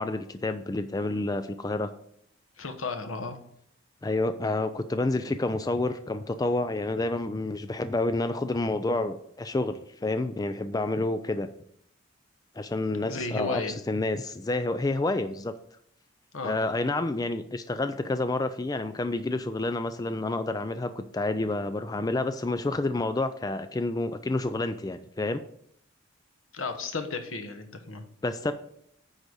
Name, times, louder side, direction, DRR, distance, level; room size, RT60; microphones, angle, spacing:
voice 1, 0.0-1.9 4.0-11.5 12.6-13.6 13.9-15.5 16.4-25.4 28.2-28.5, left 2 dB, 20° left, 10 dB, 0.3 m, -29 dB
voice 2, 2.6-3.4 13.1-13.7 16.3-16.6 26.5-28.0, left 3 dB, 80° left, 6 dB, 1.2 m, -34 dB
9.8 x 4.0 x 6.3 m, 0.69 s
head